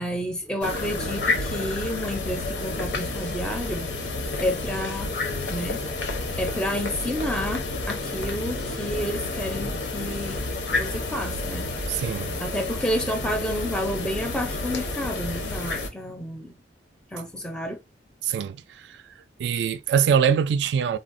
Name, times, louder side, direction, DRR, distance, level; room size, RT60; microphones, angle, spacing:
voice 1, 0.0-3.9 4.4-5.1 5.5-5.8 6.4-11.7 12.4-16.6 17.1-17.8, equal, 5° left, 0.4 m, -30 dB
sound 1, 0.6-15.9, left 2 dB, 85° left, 0.7 m, -30 dB
voice 2, 11.9-12.4 18.2-19.0 19.4-21.0, right 7 dB, 80° right, 0.3 m, -23 dB
3.7 x 2.0 x 2.5 m
head